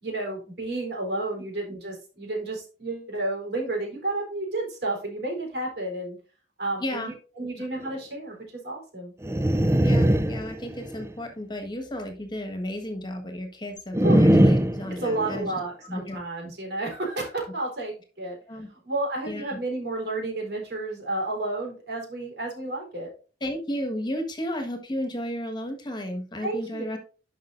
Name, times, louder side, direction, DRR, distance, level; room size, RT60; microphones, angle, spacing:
voice 1, 0.0-6.2 6.6-9.1 14.0-14.2 15.0-18.4 18.8-23.1 26.4-26.8, right 2 dB, 65° right, 0 dB, 3.7 m, -31 dB
voice 2, 6.8-7.1 7.4-7.7 9.8-15.5 15.8-16.2 18.5-18.7 19.2-19.6 23.4-27.0, left 1 dB, 25° left, 6 dB, 1.4 m, -33 dB
sound 1, 9.2-11.1 13.9-15.5, right 1 dB, 15° right, 0.5 m, -21 dB
11.5 x 5.4 x 2.5 m, 0.36 s
head